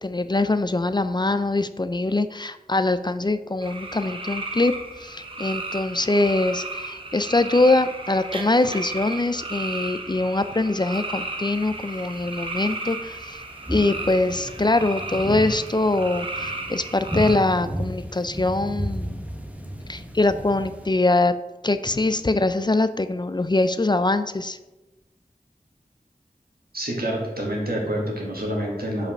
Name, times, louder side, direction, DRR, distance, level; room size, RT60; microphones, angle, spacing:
voice 1, 0.0-4.7 5.0-13.4 13.7-19.2 19.9-21.3 21.6-24.6, left 2 dB, 30° left, 11 dB, 0.4 m, -23 dB
sound 1, 3.6-17.3, right 2 dB, 35° right, 1.0 m, -34 dB
sound 2, 11.5-20.9, equal, 10° right, 0.9 m, -34 dB
voice 2, 26.7-29.1, right 1 dB, 85° right, -2 dB, 1.8 m, -27 dB
5.2 x 5.0 x 5.8 m, 1.1 s
wide cardioid pair, 50°, 15 cm